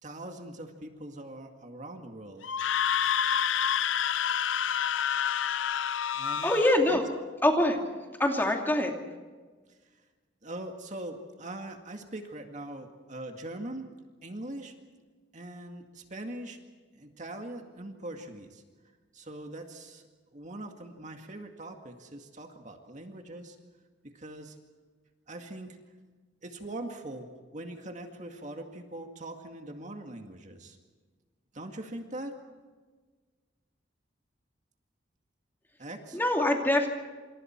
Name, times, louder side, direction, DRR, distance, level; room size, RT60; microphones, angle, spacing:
voice 1, 0.0-2.5 6.1-6.5 6.9-7.0 10.4-13.9 14.2-14.7 15.3-16.6 16.9-18.6 19.1-20.0 20.3-23.6 24.0-24.6 25.3-25.8 26.4-30.8 31.5-32.4 35.8-36.2, right 1 dB, 40° right, 4 dB, 2.1 m, -42 dB
Screaming, 2.4-6.8, left 8 dB, 85° left, 0.6 m, -28 dB
voice 2, 6.4-7.0 7.4-7.8 8.2-8.9 36.1-36.9, left 1 dB, 10° left, 2 dB, 2.7 m, -24 dB
27.5 x 27.0 x 4.6 m, 1.4 s
head